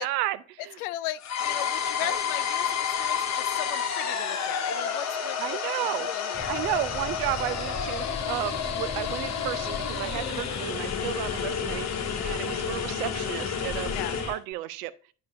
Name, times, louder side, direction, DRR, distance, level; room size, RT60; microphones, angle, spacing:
voice 1, 0.0-0.8 2.0-2.2 5.4-6.1 6.5-11.9 12.2-14.0 14.2-14.9, right 15 dB, 65° right, 0.6 m, -33 dB
voice 2, 0.8-5.4 6.1-6.5 13.9-14.2, left 14 dB, 65° left, 0.5 m, -36 dB
sound 1, 1.2-14.4, left 7 dB, 35° left, 1.1 m, -30 dB
Boat Water vehicle, 6.3-14.3, left 4 dB, 15° left, 0.7 m, -39 dB
10.0 x 4.9 x 2.5 m
figure-of-eight pair, 55°, 49 cm